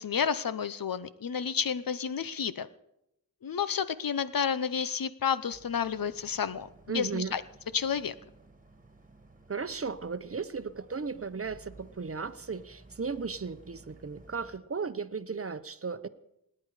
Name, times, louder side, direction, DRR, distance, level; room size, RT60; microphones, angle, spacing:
voice 1, 0.0-2.7 3.4-6.7 6.9-7.4 7.7-8.1, left 7 dB, 65° left, 14 dB, 0.8 m, -30 dB
Boat Water vehicle, 5.5-14.6, right 2 dB, 20° right, 1.9 m, -56 dB
voice 2, 6.9-7.3 9.5-16.1, right 5 dB, 40° right, 12 dB, 0.8 m, -35 dB
27.0 x 9.9 x 4.9 m, 0.82 s
wide cardioid pair, 80°, 36 cm